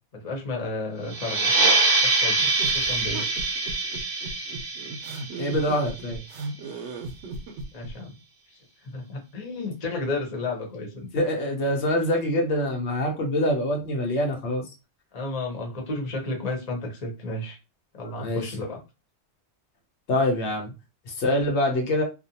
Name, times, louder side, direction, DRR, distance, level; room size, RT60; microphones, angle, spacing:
voice 1, 0.1-1.5 2.0-3.3 7.7-8.1 8.8-11.1 15.1-17.6 17.9-18.8, left 2 dB, 35° left, 0 dB, 0.9 m, -32 dB
sound 1, 1.1-6.3, right 3 dB, 25° right, 0.5 m, -24 dB
sound 2, 2.6-7.9, right 3 dB, 75° right, 0.8 m, -36 dB
voice 2, 5.4-6.2 11.1-14.6 18.2-18.4 20.1-20.7 21.1-22.0, left 1 dB, 75° left, 1 dB, 1.0 m, -25 dB
2.5 x 2.2 x 2.7 m, 0.28 s
omnidirectional pair, 1.2 m